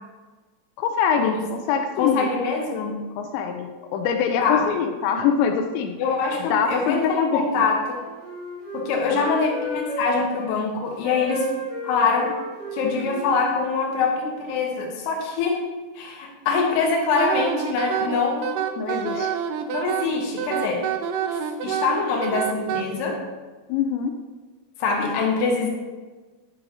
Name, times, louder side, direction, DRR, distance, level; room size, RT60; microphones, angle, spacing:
voice 1, 0.8-2.3 3.2-6.0 6.5-7.4 9.0-9.3 18.8-19.3 23.7-24.1, left 7 dB, 90° left, 5 dB, 2.9 m, -24 dB
voice 2, 2.0-3.0 4.4-4.6 6.0-8.0 8.7-11.5 11.8-12.4 12.7-15.7 16.0-18.5 19.1-19.3 19.7-20.9 21.3-23.2 24.8-25.7, left 4 dB, 75° left, 0 dB, 3.2 m, -24 dB
Wind instrument woodwind instrument, 7.4-10.5 11.0-14.2, equal, 25° left, 0.9 m, -34 dB
Wind instrument woodwind instrument 2, 17.2-22.8, right 8 dB, 85° right, 2.3 m, -27 dB
9.5 x 7.6 x 2.8 m, 1.3 s
omnidirectional pair, 5.0 m